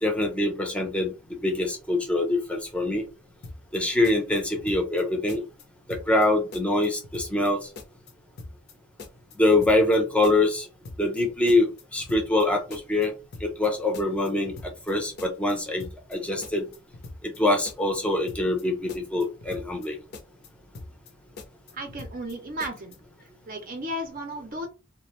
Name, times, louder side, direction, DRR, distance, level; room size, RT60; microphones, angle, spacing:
voice 1, 0.0-3.1 3.7-5.4 5.9-7.6 9.4-10.7 11.0-13.1 13.4-14.5 14.9-16.7 17.2-19.9, left 2 dB, 5° left, 2 dB, 0.5 m, -24 dB
sound 1, 3.4-3.8 4.0-5.0 5.3-5.6 5.9-6.3 6.5-7.5 7.8-8.1 8.4-8.7 9.0-10.0 10.2-10.6 10.9-11.2 11.5-12.4 12.7-13.1 13.3-13.7 13.9-14.9 15.2-15.5 15.8-16.2 16.4-17.4 17.7-18.0 18.3-18.6 18.9-19.9 20.1-20.5 20.8-21.1 21.4-22.3 22.6-23.0, left 2 dB, 55° left, 0.5 m, -42 dB
voice 2, 21.7-23.0 23.5-24.7, equal, 45° right, 4 dB, 0.5 m, -34 dB
2.4 x 2.0 x 2.9 m, 0.30 s
head